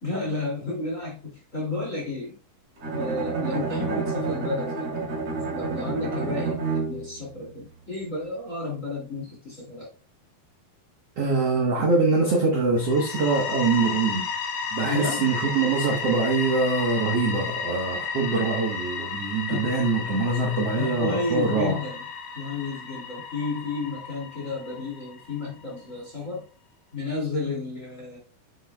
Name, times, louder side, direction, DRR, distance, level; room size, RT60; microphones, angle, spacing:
voice 1, 0.0-2.4 2.9-5.0 5.5-9.9 14.8-15.2 19.5-19.7 20.8-22.0 22.3-26.5 26.9-28.2, left 2 dB, 25° left, 2.2 m, -32 dB
Bowed string instrument, 2.8-7.2, right 3 dB, 45° right, 4.0 m, -29 dB
voice 2, 11.2-14.3 14.7-21.8, right 3 dB, 65° right, 1.6 m, -24 dB
sound 1, 12.8-25.5, left 6 dB, 85° left, 3.3 m, -33 dB
9.1 x 7.6 x 2.3 m
omnidirectional pair, 4.4 m